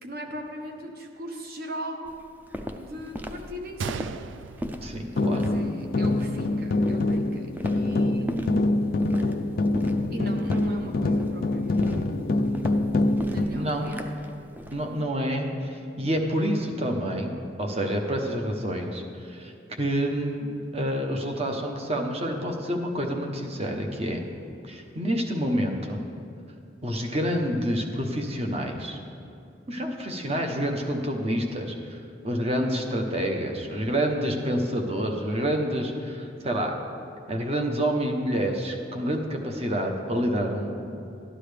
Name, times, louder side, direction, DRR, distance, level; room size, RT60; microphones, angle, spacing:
voice 1, 0.0-2.1 2.7-4.1 5.3-8.7 10.1-12.5 13.2-14.1, right 1 dB, 55° right, 3 dB, 1.0 m, -38 dB
Walk footsteps, 2.0-14.8, equal, 10° right, 0.4 m, -38 dB
Gunshot gunfire, 3.8-5.8 6.1-6.2 6.9-7.1, right 5 dB, 85° right, 0.3 m, -37 dB
voice 2, 4.8-5.6 13.5-14.0 14.7-19.5 19.8-24.2 24.7-26.0 26.8-29.0 29.7-32.0 32.2-36.7 37.3-41.0, equal, 35° right, 3 dB, 0.9 m, -28 dB
sound 1, 5.2-13.5, left 2 dB, 55° left, 0.4 m, -25 dB
12.5 x 10.0 x 3.4 m, 2.5 s
head